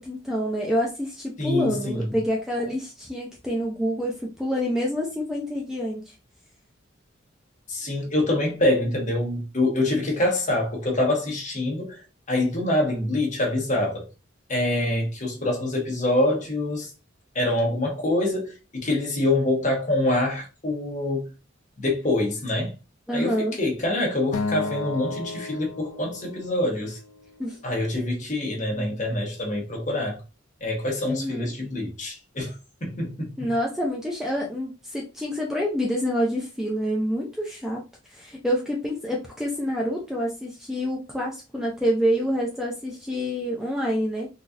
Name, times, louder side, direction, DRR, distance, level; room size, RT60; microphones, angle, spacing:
voice 1, 0.0-6.1 23.1-23.6 27.4-27.6 31.1-31.5 33.4-37.8 38.1-44.3, equal, ahead, 0.4 m, -27 dB
voice 2, 1.4-2.1 7.7-14.1 14.5-16.9 17.3-21.3 21.8-22.7 23.1-27.0 27.6-30.2 30.6-32.6 32.8-33.5, left 1 dB, 40° left, 1.0 m, -25 dB
Acoustic guitar, 24.3-26.7, left 3 dB, 80° left, 0.5 m, -32 dB
3.9 x 2.4 x 2.5 m
head